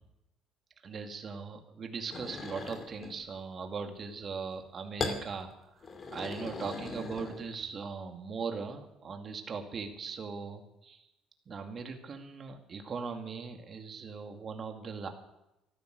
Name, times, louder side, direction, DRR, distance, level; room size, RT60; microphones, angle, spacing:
voice 1, 0.8-5.5 6.1-11.0 11.5-15.1, right 5 dB, 40° right, 5 dB, 2.3 m, -39 dB
sound 1, 2.1-3.2 5.0-5.2 5.8-7.7, left 3 dB, 35° left, 2.5 m, -38 dB
14.5 x 12.5 x 6.6 m, 0.89 s
cardioid pair, 110°, 0 cm